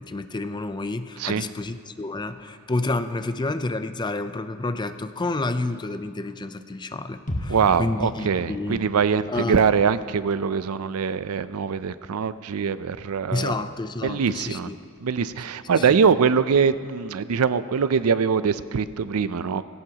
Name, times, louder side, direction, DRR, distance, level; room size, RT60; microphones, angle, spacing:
voice 1, 0.0-8.9 9.3-9.6 13.3-14.8 15.8-15.9, left 2 dB, 20° left, 10 dB, 0.5 m, -29 dB
sound 1, 7.3-11.2 11.5-11.6, left 1 dB, 35° left, 1.5 m, -37 dB
voice 2, 7.5-13.6 14.0-14.7 15.0-19.6, right 6 dB, 80° right, 14 dB, 0.5 m, -23 dB
18.5 x 16.5 x 2.9 m, 2.2 s
head